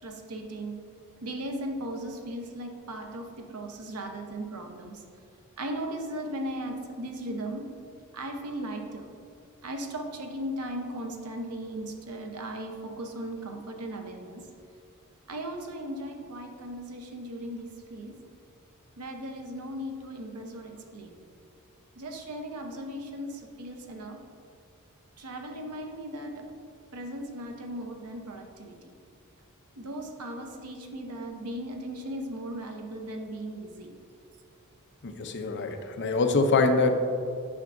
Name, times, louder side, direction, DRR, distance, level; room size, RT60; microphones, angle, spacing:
voice 1, 0.0-0.8 1.2-5.0 5.6-7.6 8.1-9.1 9.6-14.4 15.3-18.1 19.0-21.2 22.0-24.2 25.2-26.4 26.9-28.8 29.8-33.9, right 1 dB, 90° right, 3 dB, 0.8 m, -37 dB
voice 2, 35.0-36.9, left 3 dB, 55° left, 6 dB, 0.5 m, -24 dB
8.7 x 5.8 x 2.6 m, 2.3 s
head